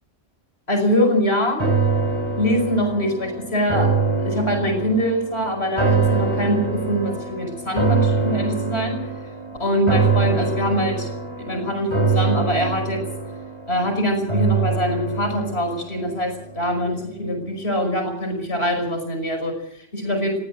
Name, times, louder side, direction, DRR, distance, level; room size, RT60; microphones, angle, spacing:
voice 1, 0.7-1.6 2.4-3.9 4.2-9.0 9.6-11.1 11.4-13.0 13.7-20.4, equal, 55° left, 3 dB, 5.7 m, -23 dB
sound 1, 1.6-16.9 17.3-17.4, right 4 dB, 20° right, 5.3 m, -24 dB
21.5 x 15.5 x 7.7 m, 0.70 s
omnidirectional pair, 1.3 m